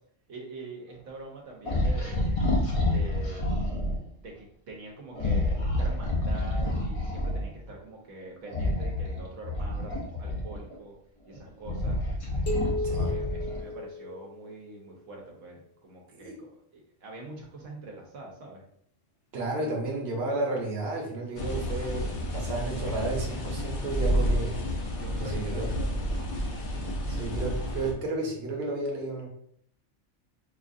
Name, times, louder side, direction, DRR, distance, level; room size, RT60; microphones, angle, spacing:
voice 1, 0.3-2.4 2.9-3.5 4.2-11.0 11.3-12.0 12.7-18.6 24.1-24.6 25.0-26.3, right 2 dB, 85° right, -1 dB, 1.2 m, -44 dB
sound 1, 1.6-4.0 5.1-7.5 8.5-10.8 11.3-13.7, left 1 dB, 40° left, 0.5 m, -28 dB
sound 2, 12.5-14.9, left 2 dB, 55° left, 1.1 m, -35 dB
voice 2, 19.3-24.5 25.2-25.6 27.1-29.3, right 2 dB, 60° right, -1 dB, 1.1 m, -32 dB
sound 3, 21.4-27.9, equal, 70° left, 1.0 m, -30 dB
4.4 x 2.4 x 2.6 m, 0.65 s
omnidirectional pair, 1.3 m